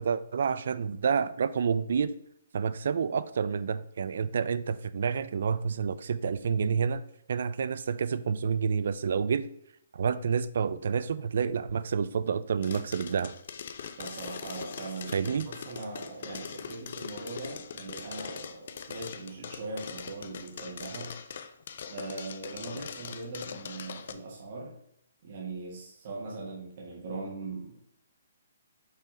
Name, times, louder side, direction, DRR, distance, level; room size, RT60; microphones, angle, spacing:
voice 1, 0.0-2.1 2.5-7.0 7.3-9.5 9.9-13.3 15.1-15.5, right 6 dB, 65° right, 15 dB, 0.4 m, -29 dB
sound 1, 12.6-24.1, left 7 dB, 55° left, 0.5 m, -42 dB
voice 2, 14.0-21.2 21.9-24.8 25.2-27.8, right 3 dB, 45° right, -3 dB, 1.6 m, -40 dB
5.6 x 3.5 x 5.0 m, 0.72 s
hypercardioid pair, 160°, 0 cm